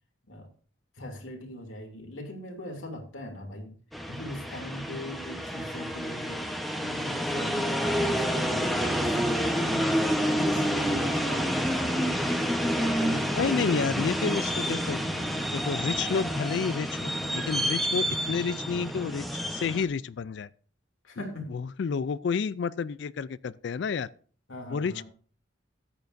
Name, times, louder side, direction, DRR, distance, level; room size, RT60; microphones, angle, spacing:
voice 1, 0.9-3.7 4.1-6.5 6.8-9.8 10.2-12.1 12.8-13.9 21.0-21.5 24.5-25.0, left 1 dB, 85° left, 2.7 m, -40 dB
sound 1, 3.9-19.8, equal, ahead, 0.9 m, -28 dB
voice 2, 13.4-15.0 15.5-20.5 21.5-24.1 24.7-25.0, left 6 dB, 60° left, 0.3 m, -30 dB
14.0 x 9.3 x 2.6 m
head